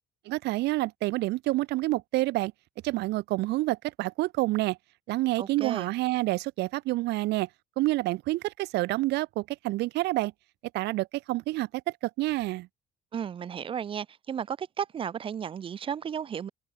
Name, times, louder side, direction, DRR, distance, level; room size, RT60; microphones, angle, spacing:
voice 1, 0.3-2.5 2.8-4.8 5.1-7.5 7.8-10.3 10.7-11.7 12.2-12.7, right 19 dB, 80° right, 1.1 m, -28 dB
voice 2, 5.4-5.9 13.1-16.5, right 8 dB, 30° right, 0.4 m, -34 dB
cardioid pair, 110°, 17 cm